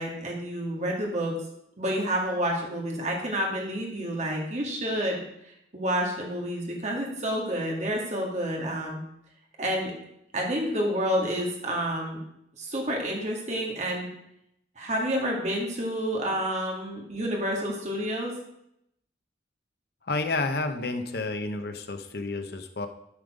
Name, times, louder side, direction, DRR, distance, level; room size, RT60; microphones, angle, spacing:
voice 1, 0.0-1.3 1.8-5.2 5.7-9.0 9.6-9.9 10.3-12.2 12.6-14.1 14.8-18.3, equal, 40° right, -1 dB, 2.2 m, -29 dB
voice 2, 20.0-22.9, left 3 dB, 60° left, 7 dB, 0.9 m, -30 dB
11.5 x 5.6 x 5.1 m, 0.77 s
head